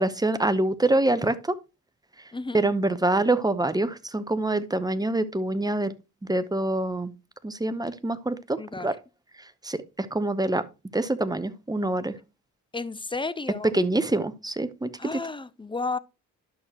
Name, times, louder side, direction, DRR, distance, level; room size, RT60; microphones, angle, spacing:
voice 1, 0.0-1.5 2.5-5.9 6.3-7.1 7.4-8.9 9.6-10.6 10.9-12.1 13.7-15.2, right 2 dB, 10° right, 0.9 m, -25 dB
voice 2, 2.3-2.6 8.6-8.9 12.7-13.7 15.0-16.0, left 3 dB, 10° left, 0.6 m, -32 dB
11.5 x 6.3 x 2.9 m
hypercardioid pair, 40°, 42 cm